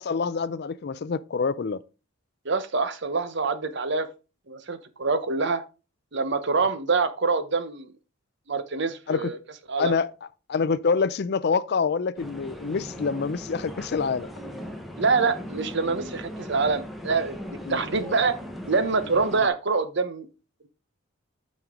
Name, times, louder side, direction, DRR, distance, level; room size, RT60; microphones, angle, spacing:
voice 1, 0.0-1.8 9.1-9.3 9.8-10.1 10.5-14.3 17.7-17.8, left 5 dB, 50° left, 0.4 m, -26 dB
voice 2, 2.4-4.1 4.5-5.6 6.1-7.9 8.5-9.4 9.7-9.9 15.0-18.4 18.7-20.3, right 4 dB, 55° right, 0.9 m, -25 dB
sound 1, 12.2-19.5, equal, ahead, 1.0 m, -38 dB
8.9 x 5.3 x 3.7 m
head